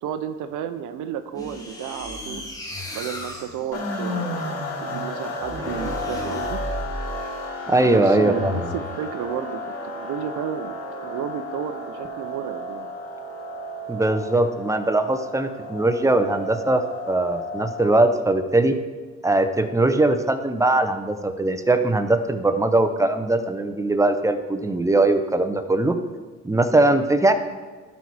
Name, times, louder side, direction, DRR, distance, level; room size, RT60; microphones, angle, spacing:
voice 1, 0.0-2.5 2.9-6.6 7.8-9.6 9.9-13.0 26.9-27.0, right 9 dB, 85° right, 10 dB, 0.6 m, -32 dB
sound 1, 1.3-7.3 8.2-8.8, left 1 dB, 10° left, 1.6 m, -33 dB
sound 2, 3.7-18.3, left 1 dB, 60° left, 1.6 m, -33 dB
voice 2, 7.7-8.7 13.9-18.8 19.2-26.0 26.4-27.3, right 2 dB, 10° right, 8 dB, 0.7 m, -20 dB
12.0 x 4.2 x 4.7 m, 1.4 s
cardioid pair, 90°, 30 cm